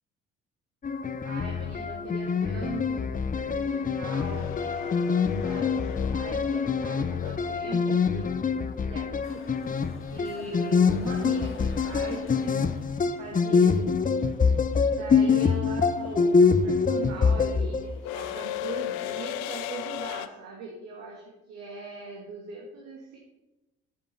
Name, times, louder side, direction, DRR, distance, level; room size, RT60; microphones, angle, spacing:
sound 1, 0.8-18.0, left 5 dB, 30° left, 0.8 m, -25 dB
voice 1, 1.2-9.1 10.1-12.5 13.2-14.1 14.9-23.2, right 3 dB, 70° right, -2 dB, 2.0 m, -40 dB
sound 2, 4.0-8.1 10.5-10.6 11.9-12.2 12.5-20.3, left 12 dB, 75° left, 0.6 m, -37 dB
sound 3, 9.2-13.0, left 4 dB, 45° left, 2.0 m, -47 dB
10.0 x 7.3 x 5.6 m, 0.98 s
hypercardioid pair, 50°, 29 cm